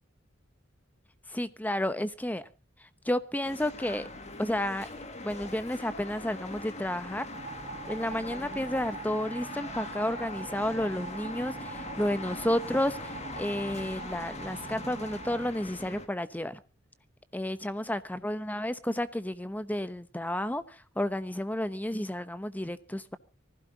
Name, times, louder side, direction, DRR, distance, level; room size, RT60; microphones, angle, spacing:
voice 1, 1.3-2.5 3.0-4.1 4.4-4.9 5.2-7.3 7.9-16.6 17.3-23.2, left 1 dB, 10° left, 0.9 m, -31 dB
sound 1, 3.4-16.1, left 2 dB, 35° left, 2.2 m, -42 dB
sound 2, 7.3-15.5, right 5 dB, 35° right, 0.8 m, -43 dB
24.5 x 16.0 x 2.9 m
head